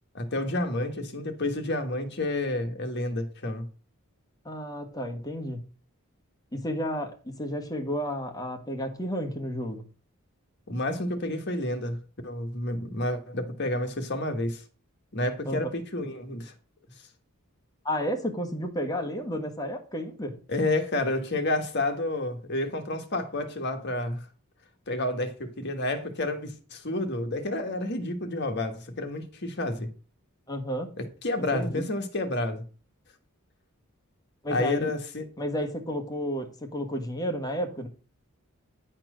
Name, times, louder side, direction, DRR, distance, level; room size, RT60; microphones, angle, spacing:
voice 1, 0.1-3.7 10.7-14.6 15.1-16.5 20.5-24.3 24.9-29.9 31.0-32.6 34.5-35.2, left 1 dB, 50° left, 1.5 m, -30 dB
voice 2, 4.4-5.7 6.5-9.8 15.4-15.7 17.8-20.4 30.5-30.9 31.4-31.8 34.4-34.9 35.4-37.9, equal, 15° left, 1.4 m, -32 dB
10.0 x 4.4 x 6.2 m
head